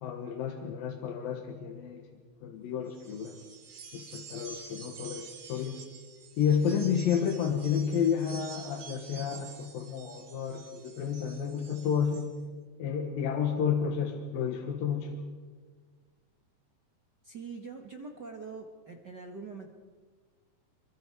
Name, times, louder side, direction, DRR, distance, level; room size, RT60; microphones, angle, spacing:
voice 1, 0.0-2.1 2.4-3.4 3.9-5.8 6.4-12.3 12.8-15.2, left 7 dB, 85° left, 4 dB, 3.3 m, -31 dB
sound 1, 2.9-12.3, right 5 dB, 55° right, 4.4 m, -49 dB
voice 2, 17.2-19.7, right 4 dB, 40° right, 2 dB, 1.6 m, -43 dB
29.5 x 23.5 x 4.8 m, 1.5 s
omnidirectional pair, 3.9 m